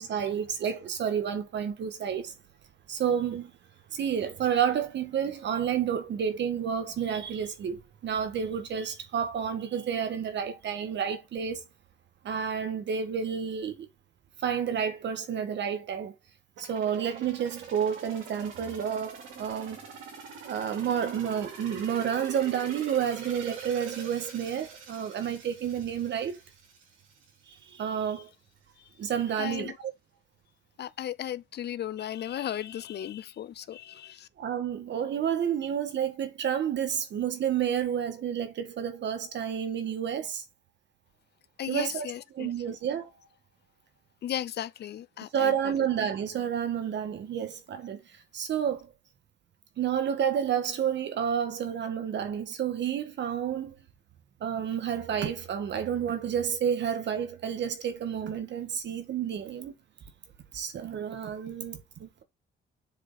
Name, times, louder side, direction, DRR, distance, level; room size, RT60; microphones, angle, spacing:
voice 1, 0.0-2.3 2.9-3.5 3.9-11.6 12.2-13.9 14.4-16.1 16.6-19.8 20.4-26.4 27.5-28.3 29.0-29.7 34.4-40.4 41.7-43.1 45.3-48.9 49.8-53.7 54.4-59.7 60.5-62.2, right 8 dB, 65° right, 1.6 m, -30 dB
sound 1, 16.6-27.3 27.7-27.8, right 5 dB, 85° right, 3.2 m, -44 dB
voice 2, 29.4-29.7 30.8-34.3 41.6-42.5 44.2-45.5, left 11 dB, 55° left, 0.6 m, -35 dB
7.3 x 3.6 x 4.0 m
cardioid pair, 90°, 20 cm